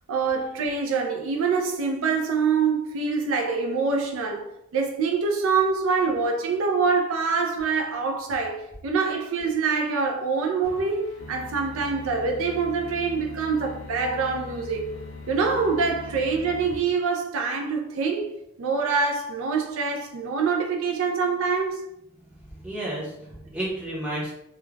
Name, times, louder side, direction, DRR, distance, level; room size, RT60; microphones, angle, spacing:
voice 1, 0.1-14.9 15.3-18.3 18.6-21.8, right 5 dB, 65° right, 0.3 m, -25 dB
sound 1, 10.6-16.8, left 3 dB, 65° left, 0.5 m, -41 dB
voice 2, 22.1-24.3, right 1 dB, 5° right, 0.6 m, -32 dB
2.3 x 2.1 x 3.1 m
head